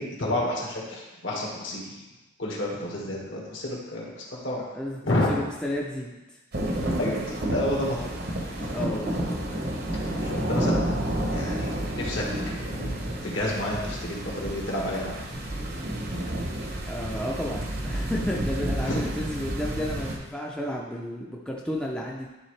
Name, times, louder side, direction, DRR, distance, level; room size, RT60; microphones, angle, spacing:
voice 1, 0.0-1.9 2.4-4.6 5.0-5.3 7.0-8.0 8.6-8.7 10.2-11.0 11.3-12.3 13.2-15.1 18.8-19.0, left 1 dB, 65° left, -3 dB, 1.6 m, -30 dB
voice 2, 5.3-6.2 8.7-9.3 16.9-22.3, left 1 dB, 5° left, -3 dB, 0.5 m, -32 dB
sound 1, 6.5-20.2, right 1 dB, 50° right, 0.8 m, -30 dB
11.0 x 3.6 x 3.2 m, 1.1 s
head